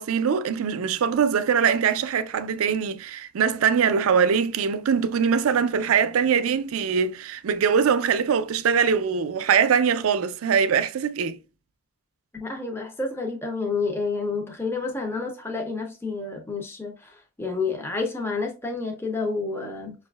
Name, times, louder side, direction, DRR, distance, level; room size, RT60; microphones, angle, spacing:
voice 1, 0.0-11.4, right 7 dB, 85° right, 0.4 m, -22 dB
voice 2, 12.3-17.1 17.4-19.9, left 4 dB, 10° left, 0.5 m, -29 dB
5.3 x 2.3 x 2.2 m
head